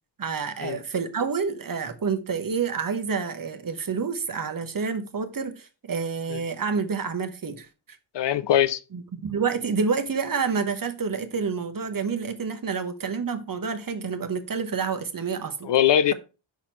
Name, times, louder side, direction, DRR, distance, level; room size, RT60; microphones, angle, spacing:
voice 1, 0.2-7.7 8.9-15.7, right 5 dB, 45° right, 0.9 m, -28 dB
voice 2, 8.1-8.8 15.6-16.1, left 10 dB, 65° left, 0.5 m, -21 dB
5.8 x 4.2 x 4.4 m
cardioid pair, 65°, 48 cm